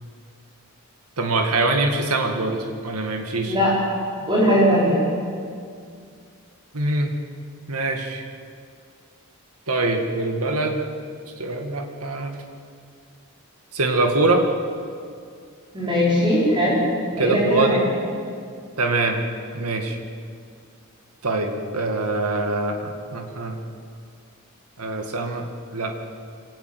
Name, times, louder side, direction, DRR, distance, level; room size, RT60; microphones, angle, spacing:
voice 1, 1.2-3.6 6.7-7.1 7.7-8.2 9.7-10.9 11.4-12.4 13.7-14.5 17.2-17.9 18.8-19.2 19.5-20.0 21.2-23.6 24.8-25.5 25.7-25.9, right 2 dB, 85° right, 4 dB, 2.1 m, -23 dB
voice 2, 4.3-5.0 15.7-16.8 17.1-17.8, equal, 20° right, -6 dB, 5.4 m, -19 dB
25.5 x 18.5 x 8.0 m, 2.3 s
head